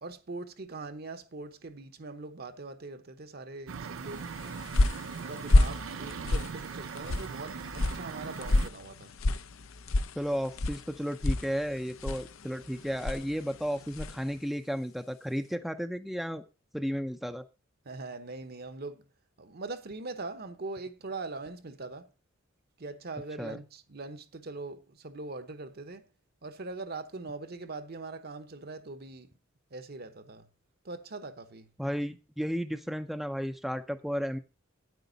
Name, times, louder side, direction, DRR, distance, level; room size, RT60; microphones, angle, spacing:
voice 1, 0.0-4.3 5.3-9.1 17.8-19.0 19.4-22.1 22.8-26.0 26.4-29.3 29.7-30.5 30.8-31.7, right 3 dB, 50° right, 1.0 m, -41 dB
sound 1, 3.7-8.7, right 6 dB, 80° right, 0.5 m, -40 dB
sound 2, 4.2-14.3, left 2 dB, 85° left, 0.7 m, -30 dB
voice 2, 10.2-16.4 16.7-17.5 23.4-23.6 31.8-34.4, equal, ahead, 0.6 m, -33 dB
9.3 x 9.2 x 4.0 m
head